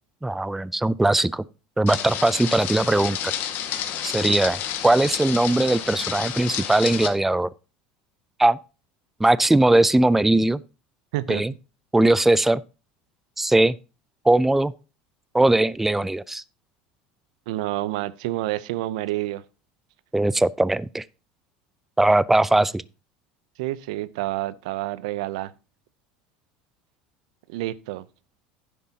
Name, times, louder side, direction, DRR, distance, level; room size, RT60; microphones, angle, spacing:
voice 1, 0.2-1.4 1.8-3.3 4.0-7.5 8.4-8.6 9.2-10.6 11.3-11.5 11.9-12.6 13.4-13.8 14.2-14.7 15.3-16.4 20.1-21.0 22.0-22.8, right 2 dB, 5° right, 0.4 m, -20 dB
sound 1, 1.9-7.1, left 10 dB, 60° left, 1.7 m, -30 dB
voice 2, 11.1-11.4 17.5-19.4 23.6-25.5 27.5-28.0, right 16 dB, 80° right, 0.6 m, -28 dB
11.0 x 10.0 x 2.8 m
supercardioid pair, 95°, 4 cm